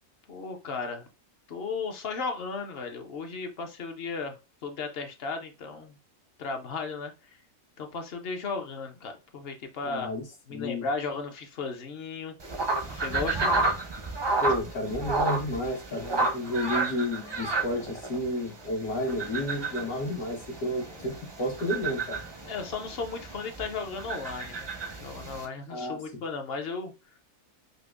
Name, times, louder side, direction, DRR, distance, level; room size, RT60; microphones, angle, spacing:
voice 1, 0.3-1.1 1.5-4.4 4.6-6.0 6.4-7.4 7.8-10.1 10.5-12.3 12.9-13.6 20.8-21.0 22.4-24.7 25.0-26.9, left 4 dB, 55° left, 5 dB, 0.7 m, -35 dB
voice 2, 9.8-10.2 10.5-10.9 14.4-22.2 25.7-26.2, left 1 dB, 80° left, -1 dB, 1.8 m, -31 dB
sound 1, 12.4-25.5, right 3 dB, 35° right, 0.4 m, -32 dB
5.1 x 2.1 x 2.3 m, 0.28 s
omnidirectional pair, 1.5 m